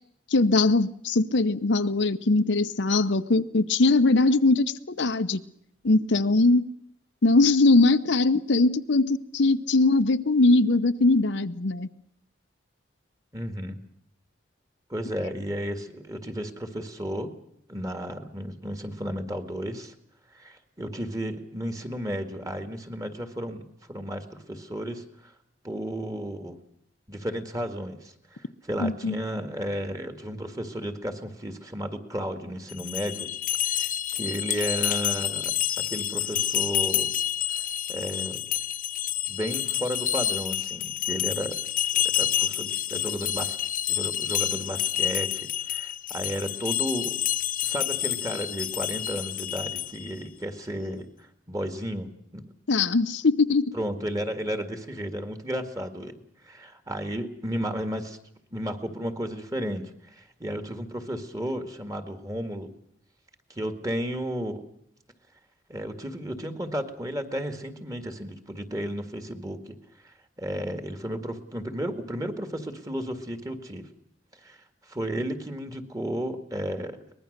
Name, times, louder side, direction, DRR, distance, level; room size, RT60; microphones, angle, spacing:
voice 1, 0.3-5.4 5.8-6.6 7.2-11.9 28.8-29.2 52.7-53.7, left 3 dB, 70° left, 0.8 m, -21 dB
voice 2, 13.3-13.8 14.9-17.3 17.7-19.9 20.3-25.3 25.6-26.6 27.1-33.3 33.6-37.1 37.5-37.6 37.9-38.4 39.3-41.6 41.9-43.6 43.9-47.2 47.6-52.4 53.7-58.2 58.5-62.7 63.5-64.6 65.7-69.8 70.0-73.9 74.4-77.0, equal, 20° right, 1.9 m, -33 dB
sound 1, 32.7-50.1, left 12 dB, 45° left, 0.9 m, -28 dB
23.5 x 20.5 x 6.6 m
head